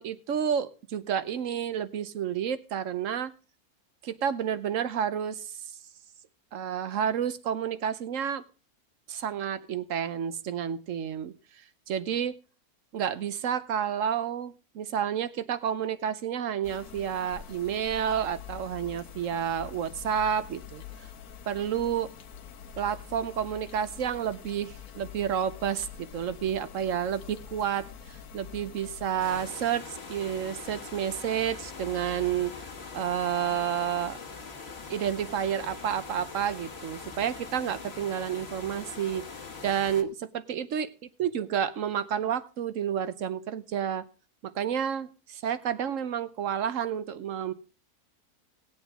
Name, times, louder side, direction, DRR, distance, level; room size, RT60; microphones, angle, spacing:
voice 1, 0.0-3.3 4.0-5.7 6.5-8.4 9.1-11.3 11.9-12.3 12.9-20.8 21.5-22.1 22.8-32.6 32.9-34.2 34.9-39.3 39.6-40.9 41.2-44.1 44.4-47.5, right 8 dB, 60° right, 13 dB, 1.1 m, -30 dB
sound 1, 16.6-29.5, left 8 dB, 75° left, 1.4 m, -46 dB
sound 2, 29.2-40.0, left 5 dB, 45° left, 1.6 m, -42 dB
18.5 x 8.2 x 3.6 m, 0.35 s
omnidirectional pair, 1.6 m